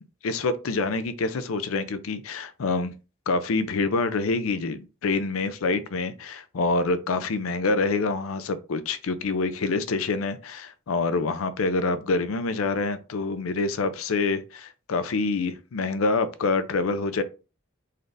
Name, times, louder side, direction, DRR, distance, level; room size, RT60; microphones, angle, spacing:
voice 1, 0.2-2.9 3.3-17.2, left 3 dB, 80° left, 0.5 m, -26 dB
4.0 x 2.5 x 3.3 m
head